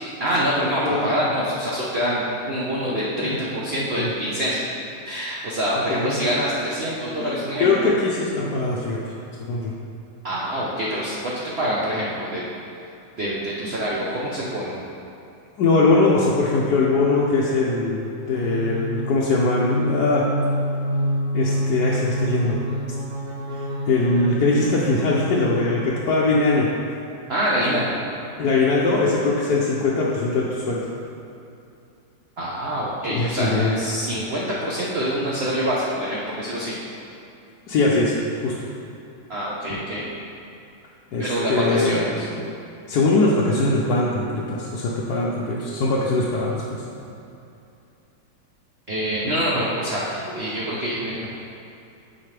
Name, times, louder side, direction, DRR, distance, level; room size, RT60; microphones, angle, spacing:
voice 1, 0.2-4.7 5.0-7.9 10.2-12.5 13.2-14.8 27.3-28.0 32.4-36.8 39.3-40.1 41.2-42.3 48.9-51.3, equal, 55° right, -6 dB, 0.7 m, -25 dB
voice 2, 7.6-9.1 9.4-9.7 14.0-14.1 15.6-20.3 21.3-22.6 23.5-26.7 28.4-30.9 33.1-33.8 37.7-38.1 38.4-38.7 41.1-42.4 42.9-46.8 50.3-50.4, left 3 dB, 65° left, -5 dB, 1.1 m, -21 dB
sound 1, 18.2-26.1, equal, 35° right, 1.9 m, -27 dB
9.9 x 4.5 x 3.3 m, 2.7 s
omnidirectional pair, 2.2 m